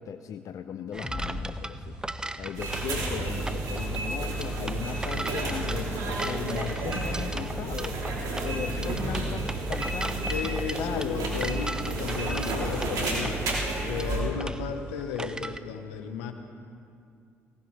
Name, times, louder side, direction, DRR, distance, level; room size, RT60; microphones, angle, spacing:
voice 1, 0.0-1.9 2.4-5.9 6.2-8.0 8.4-10.2 10.8-11.3, left 8 dB, 55° left, 9 dB, 0.5 m, -37 dB
sound 1, 0.9-15.6, right 2 dB, 10° right, 0.6 m, -38 dB
sound 2, 1.0-4.3, left 1 dB, 20° left, 1.8 m, -41 dB
sound 3, 2.5-14.2, right 2 dB, 65° right, 3.0 m, -31 dB
voice 2, 10.3-13.4 13.8-16.3, left 6 dB, 80° left, 7 dB, 1.0 m, -34 dB
18.5 x 18.0 x 3.2 m, 2.4 s
hypercardioid pair, 50°, 7 cm